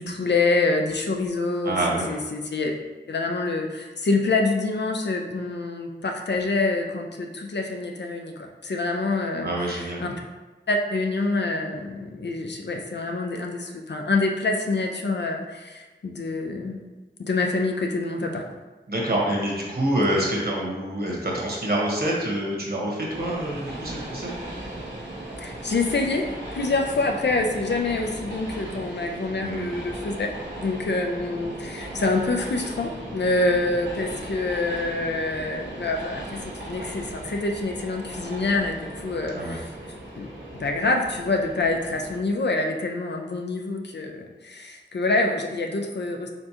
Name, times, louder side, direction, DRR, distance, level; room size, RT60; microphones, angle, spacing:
voice 1, 0.0-1.8 2.1-2.7 3.1-10.2 10.7-16.8 17.2-18.5 25.4-30.3 30.6-39.7 40.2-40.3 40.5-46.3, left 3 dB, 65° left, 3 dB, 0.5 m, -26 dB
voice 2, 1.6-2.1 9.4-10.0 18.9-24.3 29.4-29.7 39.4-39.6, right 1 dB, 55° right, -3 dB, 1.3 m, -26 dB
Train, 23.0-42.2, right 1 dB, 75° right, 1.2 m, -37 dB
4.4 x 3.8 x 2.9 m, 1.2 s
wide cardioid pair, 60°, 19 cm